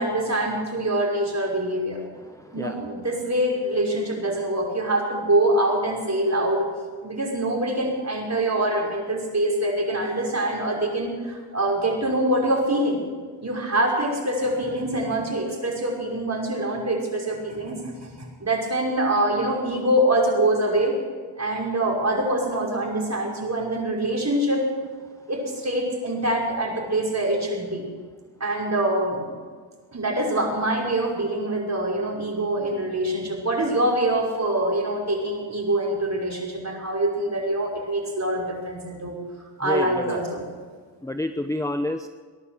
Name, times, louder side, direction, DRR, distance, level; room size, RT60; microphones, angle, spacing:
voice 1, 0.0-2.0 2.5-6.7 7.0-13.0 13.4-21.0 21.4-24.7 25.3-27.9 28.4-29.4 29.9-39.2 39.6-40.4, right 1 dB, 35° right, -1 dB, 5.8 m, -24 dB
voice 2, 2.2-2.7 39.6-40.2 41.0-42.1, left 1 dB, 5° left, 8 dB, 0.8 m, -29 dB
18.5 x 11.5 x 6.8 m, 1.5 s
cardioid pair, 50°, 47 cm